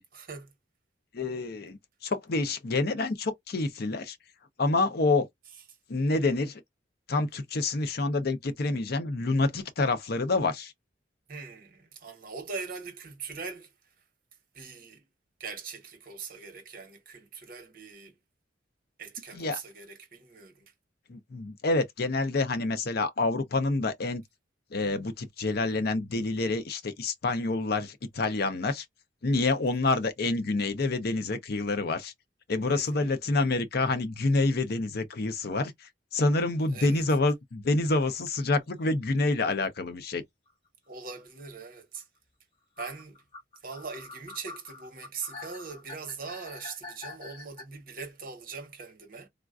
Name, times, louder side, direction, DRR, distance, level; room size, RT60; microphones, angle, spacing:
voice 1, 0.1-0.5 11.3-13.7 14.5-15.0 15.4-18.2 19.0-20.7 32.7-33.1 36.7-37.0 40.9-42.1 42.8-43.2 43.6-49.3, right 5 dB, 50° right, 1.0 m, -41 dB
voice 2, 1.1-4.2 4.6-5.3 5.9-6.6 7.1-10.7 19.3-19.6 21.1-24.2 24.7-28.9 29.2-32.1 32.5-40.2, left 3 dB, 55° left, 0.6 m, -27 dB
sound 1, 40.5-40.6 42.0-42.1 42.8-47.6, left 3 dB, 35° left, 1.5 m, -45 dB
3.6 x 2.4 x 2.4 m
head